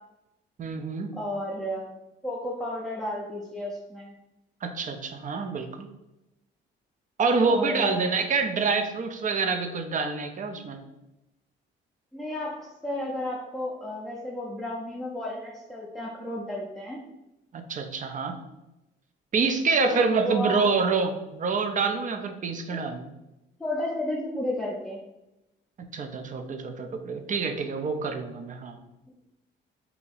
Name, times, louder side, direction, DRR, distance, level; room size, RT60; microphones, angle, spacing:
voice 1, 0.6-1.1 4.6-5.9 7.2-10.8 17.5-18.4 19.3-23.0 25.8-28.8, right 4 dB, 40° right, 7 dB, 0.5 m, -27 dB
voice 2, 1.1-1.9 2.2-4.1 7.4-8.0 12.1-17.0 19.8-20.6 22.7-22.9 23.6-25.0, left 1 dB, ahead, -4 dB, 0.6 m, -32 dB
2.8 x 2.7 x 4.0 m, 0.94 s
cardioid pair, 90°, 20 cm